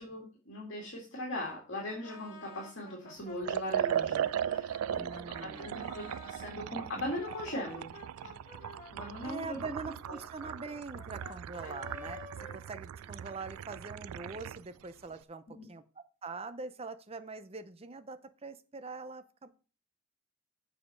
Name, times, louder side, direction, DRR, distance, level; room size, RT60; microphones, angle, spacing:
voice 1, 0.0-7.9 8.2-8.3 8.9-9.6 10.1-10.2 11.6-11.8 15.6-15.7, left 1 dB, 55° left, -2 dB, 2.3 m, -40 dB
Brass instrument, 1.4-6.5 7.0-13.3, left 2 dB, 40° left, 3.1 m, -51 dB
Liquid, 3.4-14.7, right 9 dB, 85° right, 0.3 m, -38 dB
voice 2, 5.0-5.9 9.2-12.2 12.5-15.8 16.2-19.5, right 3 dB, 30° right, 10 dB, 0.6 m, -43 dB
7.4 x 5.1 x 6.4 m, 0.37 s
head